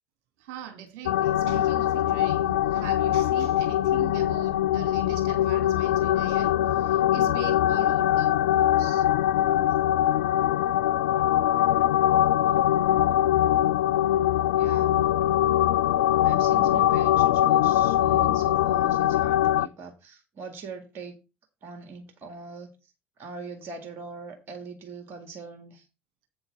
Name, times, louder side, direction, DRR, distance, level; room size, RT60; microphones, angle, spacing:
voice 1, 0.4-9.0, right 9 dB, 60° right, 2.3 m, -42 dB
sound 1, 1.1-19.7, left 12 dB, 70° left, 0.4 m, -22 dB
voice 2, 14.5-15.1 16.2-21.2 21.6-22.9 23.2-25.8, right 4 dB, 45° right, 2.0 m, -42 dB
8.2 x 6.9 x 4.9 m
figure-of-eight pair, 60°, 6 cm